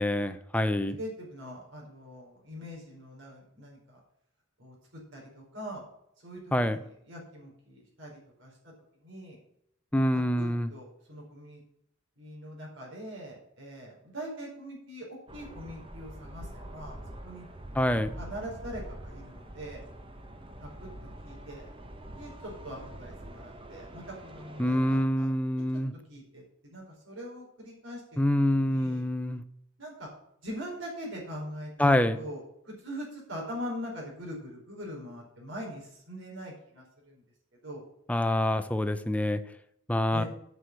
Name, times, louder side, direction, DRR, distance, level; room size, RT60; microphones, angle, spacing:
voice 1, 0.0-1.0 6.5-6.8 9.9-10.7 17.7-18.1 24.6-25.9 28.2-29.4 31.8-32.2 38.1-39.4 39.9-40.2, left 1 dB, 5° left, 10 dB, 0.7 m, -26 dB
voice 2, 0.8-4.0 4.6-4.7 5.1-5.8 6.2-6.8 7.1-8.5 9.0-9.4 10.1-11.6 12.2-17.4 18.2-19.8 20.6-20.9 21.2-21.7 22.1-25.3 26.1-28.0 28.3-29.0 29.8-30.1 30.4-31.9 32.2-37.2 37.6-37.8 40.1-40.3, equal, 70° right, -2 dB, 4.6 m, -42 dB
sound 1, 15.3-25.1, right 1 dB, 25° right, 1.1 m, -45 dB
8.0 x 6.3 x 8.1 m, 0.76 s
head